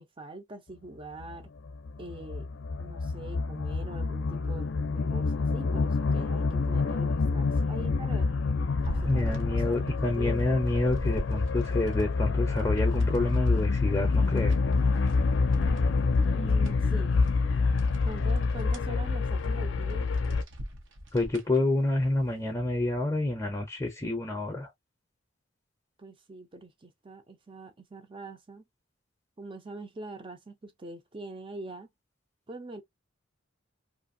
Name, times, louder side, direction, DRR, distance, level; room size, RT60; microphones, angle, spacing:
voice 1, 0.0-1.5 2.0-2.5 2.8-8.3 8.9-10.6 16.3-17.1 18.0-20.1 26.0-28.6 29.4-31.9 32.5-32.8, right 2 dB, 25° right, 0.5 m, -43 dB
sound 1, 1.2-20.4, left 4 dB, 65° left, 0.5 m, -27 dB
sound 2, 8.8-10.0 10.4-12.0 12.6-15.1 15.5-16.7 17.2-17.3 17.8-18.9 19.3-19.5 19.9-21.6 22.0-22.1, equal, 70° right, 0.8 m, -40 dB
voice 2, 9.1-14.6 21.1-24.7, left 2 dB, 15° left, 0.6 m, -28 dB
2.8 x 2.5 x 2.6 m
head